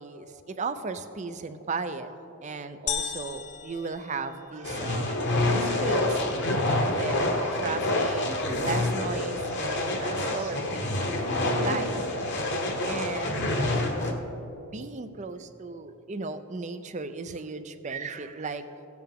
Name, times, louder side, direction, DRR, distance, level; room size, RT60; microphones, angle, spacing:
voice 1, 0.0-6.3 6.8-8.3 8.6-11.1 11.6-11.9 12.8-13.9 14.6-18.6, right 4 dB, 30° right, 10 dB, 0.4 m, -36 dB
sound 1, 2.9-4.8, left 7 dB, 35° left, 0.6 m, -35 dB
sound 2, 4.6-14.1, left 1 dB, 50° left, 1.0 m, -27 dB
17.0 x 7.7 x 3.6 m, 2.9 s
head